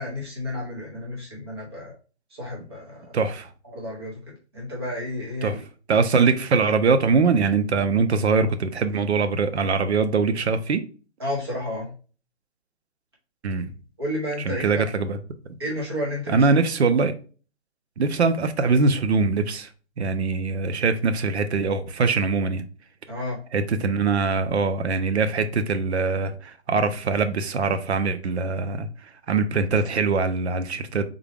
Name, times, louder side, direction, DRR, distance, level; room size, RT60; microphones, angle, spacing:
voice 1, 0.0-1.9 2.3-3.2 3.6-5.6 11.2-11.9 14.0-14.8 15.6-16.5 23.1-23.4, left 1 dB, 20° right, 0.8 m, -31 dB
voice 2, 3.1-3.5 5.4-5.6 5.9-10.8 13.4-13.7 14.5-15.2 16.3-17.1 18.0-19.7 20.0-22.6 23.5-28.9 29.3-31.0, right 4 dB, 70° right, 0.6 m, -22 dB
3.7 x 2.2 x 3.3 m
hypercardioid pair, 175°, 34 cm